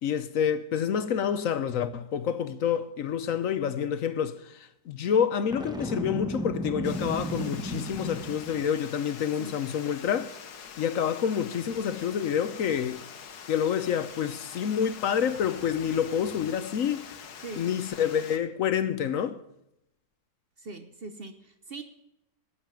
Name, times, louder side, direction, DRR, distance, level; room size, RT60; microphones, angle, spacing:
voice 1, 0.0-10.4 10.8-13.0 13.5-17.2 17.6-19.4, left 8 dB, 65° left, 1.1 m, -28 dB
Boom, 5.5-8.7, equal, 5° right, 0.8 m, -34 dB
Water, 6.8-18.4, left 7 dB, 85° left, 1.6 m, -45 dB
voice 2, 20.6-21.8, right 3 dB, 45° right, 0.9 m, -41 dB
10.5 x 8.3 x 7.4 m
omnidirectional pair, 1.6 m